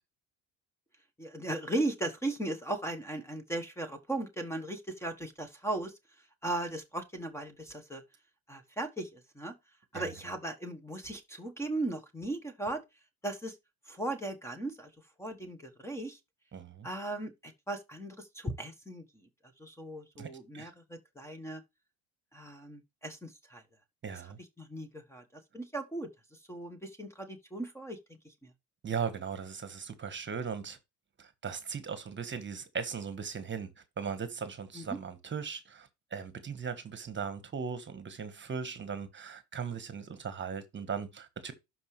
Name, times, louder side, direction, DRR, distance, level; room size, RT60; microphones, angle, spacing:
voice 1, 1.2-5.9 6.4-8.0 8.5-9.5 9.9-12.8 13.2-13.5 13.9-14.9 15.2-16.2 16.8-19.0 19.6-21.6 22.3-23.6 24.6-25.2 25.5-26.1 26.5-28.0 28.2-28.3 34.7-35.0, right 2 dB, 5° left, 1.3 m, -37 dB
voice 2, 16.5-16.9 20.2-20.3 20.5-20.7 24.0-24.4 28.8-30.8 31.2-33.7 34.0-41.5, right 6 dB, 30° right, 1.4 m, -38 dB
12.0 x 4.9 x 3.2 m
cardioid pair, 110°, 38 cm